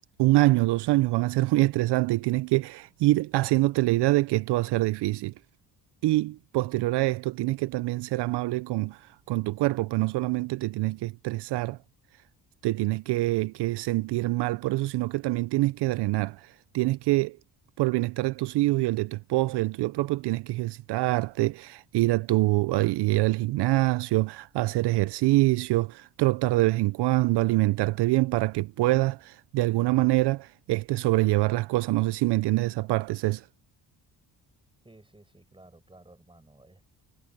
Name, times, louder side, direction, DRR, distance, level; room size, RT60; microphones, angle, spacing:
voice 1, 0.2-5.3 6.0-11.8 12.6-17.4 17.8-33.5, right 19 dB, 75° right, 0.5 m, -25 dB
voice 2, 34.8-36.8, right 2 dB, 10° right, 7.2 m, -54 dB
cardioid pair, 100°, 41 cm